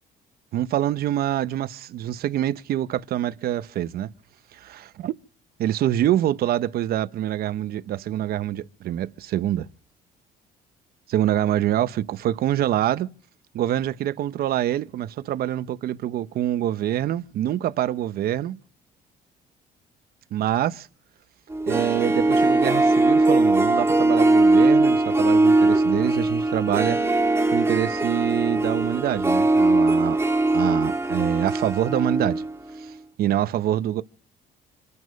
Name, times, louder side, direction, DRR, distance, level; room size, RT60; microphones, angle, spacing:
voice 1, 0.5-4.1 4.5-5.1 5.6-9.7 11.1-13.1 13.5-18.6 20.3-20.9 21.7-27.0 27.5-30.2 30.5-32.4 32.8-34.0, right 12 dB, 65° right, 0.9 m, -25 dB
Harp, 21.5-32.5 32.8-32.9, right 2 dB, 15° right, 2.3 m, -20 dB
26.5 x 9.7 x 5.3 m
cardioid pair, 110°, 17 cm